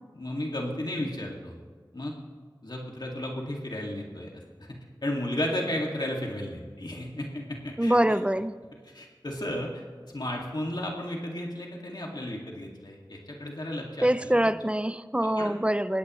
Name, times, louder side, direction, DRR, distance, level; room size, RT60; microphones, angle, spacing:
voice 1, 0.1-1.5 1.9-2.1 2.6-4.3 4.6-4.7 5.0-8.2 8.9-9.8 10.1-14.3 15.2-15.5, left 1 dB, 60° left, -1 dB, 2.3 m, -33 dB
voice 2, 7.8-8.5 14.0-16.0, right 1 dB, 15° right, 13 dB, 0.5 m, -24 dB
21.0 x 16.5 x 3.2 m, 1.5 s
wide cardioid pair, 45°, 8 cm